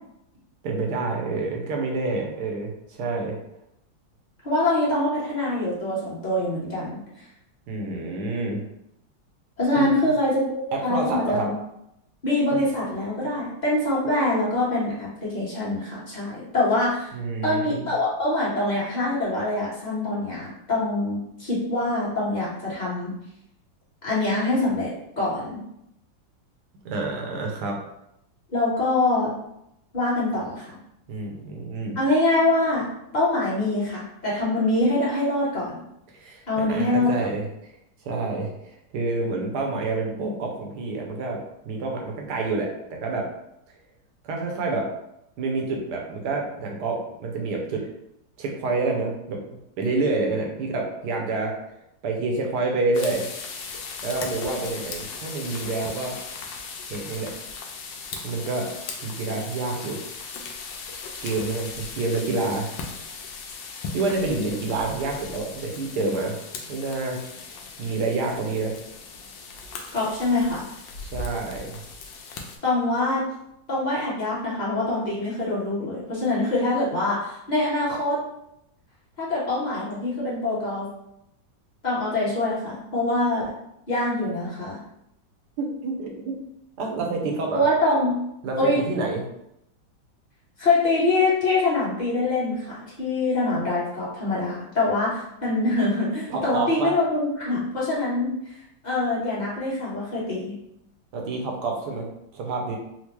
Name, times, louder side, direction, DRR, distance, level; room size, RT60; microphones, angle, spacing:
voice 1, 0.6-3.4 7.7-8.6 9.7-10.1 10.7-11.5 12.5-12.6 17.1-17.9 26.8-27.8 31.1-32.0 36.1-37.5 38.0-43.3 44.2-44.9 45.4-47.8 48.4-49.4 49.8-51.5 52.0-53.3 54.0-56.2 56.9-57.3 58.2-58.7 59.0-60.0 61.2-62.7 63.9-66.3 66.7-67.2 67.8-68.8 71.0-71.8 85.6-86.3 86.8-87.6 88.4-89.2 96.3-96.9 101.1-102.8, right 3 dB, 70° right, 1 dB, 1.2 m, -28 dB
voice 2, 4.4-7.2 9.6-11.5 12.2-17.1 17.4-23.1 24.0-25.6 28.5-29.3 29.9-30.8 31.9-32.9 33.1-35.8 36.5-37.2 69.9-70.7 72.6-73.2 73.7-78.2 79.2-80.9 81.8-83.5 83.9-84.8 87.5-88.1 88.6-88.8 90.6-98.5 98.8-100.6, left 2 dB, 30° left, -8 dB, 1.0 m, -24 dB
sound 1, 52.9-72.6, left 4 dB, 75° left, 1.2 m, -38 dB
4.3 x 2.1 x 3.0 m, 0.80 s
omnidirectional pair, 2.1 m